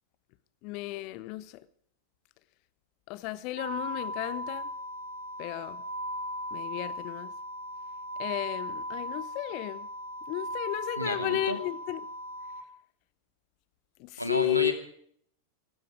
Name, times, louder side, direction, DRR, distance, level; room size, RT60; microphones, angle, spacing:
voice 1, 0.6-1.5 3.1-4.7 5.4-5.8 6.5-7.3 8.2-9.9 10.3-12.0 14.0-14.7, left 17 dB, 45° left, 1.0 m, -33 dB
sound 1, 3.6-12.6, equal, 70° right, 2.1 m, -37 dB
voice 2, 11.0-11.6 14.2-14.7, equal, 90° right, 2.2 m, -31 dB
19.5 x 16.0 x 4.7 m
figure-of-eight pair, 90°, 0 cm